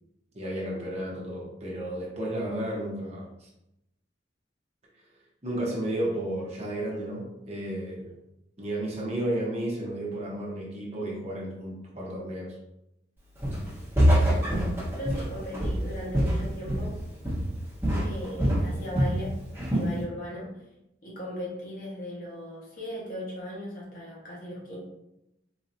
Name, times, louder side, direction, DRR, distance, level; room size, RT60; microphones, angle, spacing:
voice 1, 0.3-3.5 5.4-8.1 8.6-12.5, right 1 dB, 35° right, -3 dB, 0.9 m, -32 dB
Walk footsteps, 13.4-13.7 14.0-17.0 17.2-17.6 17.8-19.2 19.6-19.9, equal, 15° right, 1.1 m, -24 dB
voice 2, 15.0-17.0 18.0-20.5 21.0-24.8, equal, 50° left, -4 dB, 1.3 m, -37 dB
4.0 x 2.8 x 2.6 m, 0.87 s
head